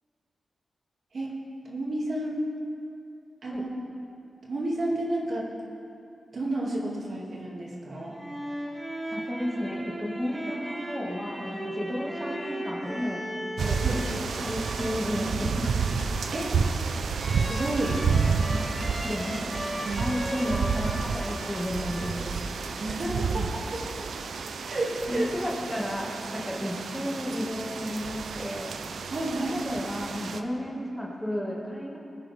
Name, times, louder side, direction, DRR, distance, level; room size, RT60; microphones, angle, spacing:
voice 1, 1.6-2.4 3.4-3.9 4.5-5.5 6.3-8.2 13.8-14.0 16.3-16.5 17.4-18.0 19.8-20.1 22.8-23.8 24.7-25.3 29.1-29.6, right 1 dB, 60° right, -4 dB, 2.4 m, -31 dB
sound 1, 7.9-22.6, equal, 15° right, 2.4 m, -37 dB
voice 2, 9.1-13.2 13.6-15.7 18.3-18.6 19.0-19.5 20.0-22.4 23.4-23.5 25.1-28.7 29.3-32.0, equal, 5° left, -3 dB, 2.0 m, -33 dB
sound 2, 13.6-30.4, right 5 dB, 85° right, 0.6 m, -30 dB
20.5 x 10.0 x 3.6 m, 2.6 s
wide cardioid pair, 100°, 0 cm